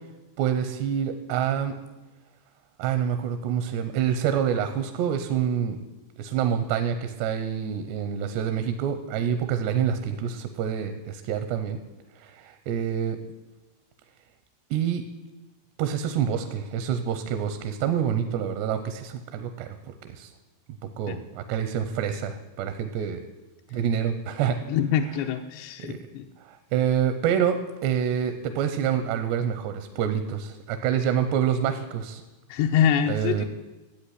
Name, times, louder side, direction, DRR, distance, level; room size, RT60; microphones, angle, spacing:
voice 1, 0.4-1.7 2.8-5.8 6.2-11.8 12.2-13.2 14.7-15.0 15.8-20.3 21.0-23.2 23.7-24.6 25.8-26.0 26.4-32.2 33.1-33.5, right 8 dB, 80° right, 9 dB, 3.1 m, -27 dB
voice 2, 24.7-26.3 32.5-33.5, left 8 dB, 85° left, 4 dB, 2.9 m, -25 dB
14.0 x 8.3 x 10.0 m, 1.1 s
omnidirectional pair, 4.9 m